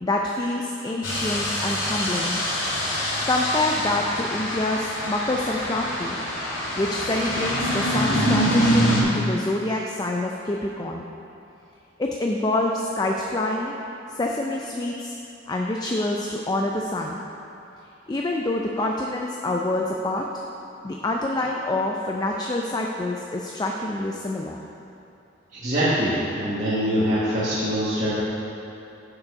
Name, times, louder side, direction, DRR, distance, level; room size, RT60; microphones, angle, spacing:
voice 1, 0.0-2.4 3.3-6.2 6.8-11.1 12.0-13.7 14.1-15.2 15.5-17.2 18.1-20.3 20.8-24.7, left 2 dB, 20° left, 0 dB, 0.4 m, -26 dB
sound 1, 1.0-9.0, equal, 85° left, 2.0 m, -25 dB
voice 2, 25.5-28.2, equal, 40° right, -11 dB, 1.4 m, -24 dB
7.1 x 6.8 x 5.2 m, 2.8 s
head